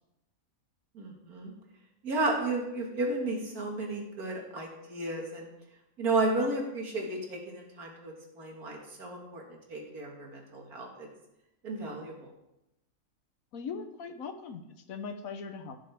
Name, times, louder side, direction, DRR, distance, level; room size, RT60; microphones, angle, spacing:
voice 1, 1.0-1.5 2.0-5.5 6.0-9.4 9.7-11.1 11.6-12.3, right 2 dB, 90° right, 0 dB, 2.4 m, -33 dB
voice 2, 13.5-15.8, left 5 dB, 70° left, 8 dB, 1.3 m, -40 dB
15.5 x 6.4 x 3.5 m, 0.89 s
omnidirectional pair, 1.6 m